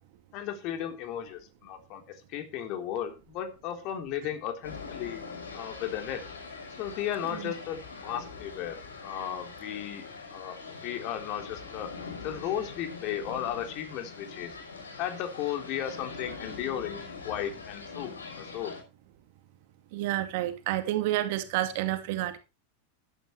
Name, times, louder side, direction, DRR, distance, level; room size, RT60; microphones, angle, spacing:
voice 1, 0.3-5.2 5.5-6.2 6.8-14.6 15.0-18.8, left 10 dB, 40° left, 3.6 m, -35 dB
sound 1, 4.6-18.8, left 4 dB, 75° left, 6.0 m, -43 dB
voice 2, 19.9-22.4, right 14 dB, 50° right, 2.3 m, -29 dB
15.0 x 12.5 x 3.2 m
figure-of-eight pair, 90°, 0 cm